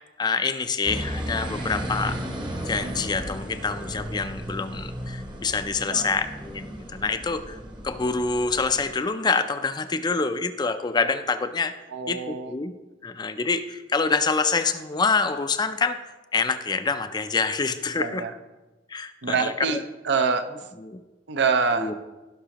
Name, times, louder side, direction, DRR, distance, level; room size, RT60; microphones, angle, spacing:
voice 1, 0.2-2.2 2.7-7.6 7.8-11.7 12.1-12.7 13.0-16.0 16.3-18.2 18.9-19.8 20.8-21.0 21.8-21.9, left 4 dB, 25° left, 10 dB, 0.4 m, -26 dB
sound 1, 0.8-8.9, equal, 25° right, 0.9 m, -34 dB
voice 2, 11.9-12.5 18.0-18.3 19.2-20.5 21.3-21.9, right 5 dB, 70° right, 9 dB, 0.6 m, -25 dB
16.0 x 5.9 x 2.9 m, 1.1 s
head